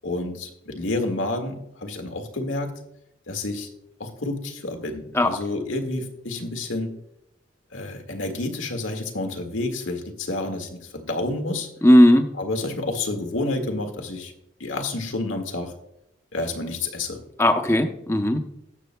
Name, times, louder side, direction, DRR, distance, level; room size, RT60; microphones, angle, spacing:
voice 1, 0.0-2.7 3.3-3.7 4.0-6.9 7.7-11.7 12.4-14.3 14.6-15.7 16.3-17.2, left 2 dB, 85° left, 4 dB, 1.8 m, -29 dB
voice 2, 11.8-12.3 17.4-18.4, left 1 dB, 15° left, 6 dB, 0.7 m, -16 dB
18.0 x 7.5 x 2.2 m, 0.82 s
head